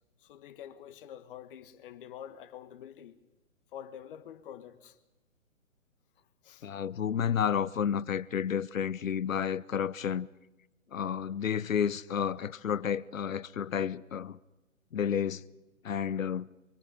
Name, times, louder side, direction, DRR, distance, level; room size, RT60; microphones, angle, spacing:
voice 1, 0.2-3.2 3.7-5.0 6.4-6.7, left 10 dB, 40° left, 1.8 m, -47 dB
voice 2, 6.6-10.3 10.9-14.4 14.9-15.4 15.8-16.5, left 8 dB, 70° left, 1.0 m, -31 dB
25.0 x 24.0 x 5.2 m
hypercardioid pair, 135°, 41 cm